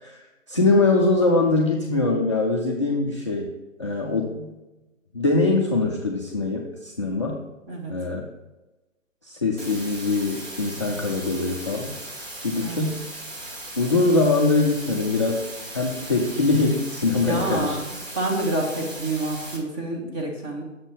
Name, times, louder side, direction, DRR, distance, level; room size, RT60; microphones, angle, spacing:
voice 1, 0.5-3.5 3.8-4.5 5.1-7.4 7.9-8.2 9.2-11.9 12.4-13.1 13.8-15.4 15.7-17.8, left 3 dB, 25° left, -3 dB, 0.4 m, -22 dB
sound 1, 9.6-19.6, right 1 dB, 45° right, 2.4 m, -38 dB
voice 2, 12.5-12.9 17.2-20.6, right 2 dB, 20° right, 0 dB, 1.2 m, -28 dB
6.9 x 4.4 x 5.6 m, 1.0 s
hypercardioid pair, 150°, 39 cm